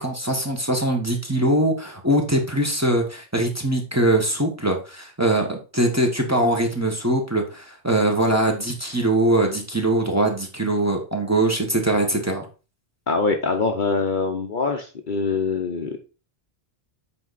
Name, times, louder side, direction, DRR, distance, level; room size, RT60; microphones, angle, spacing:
voice 1, 0.0-12.4, right 1 dB, 15° right, 1 dB, 1.2 m, -22 dB
voice 2, 13.1-16.0, left 4 dB, 50° left, 4 dB, 0.9 m, -24 dB
7.6 x 4.6 x 4.1 m, 0.34 s
omnidirectional pair, 1.2 m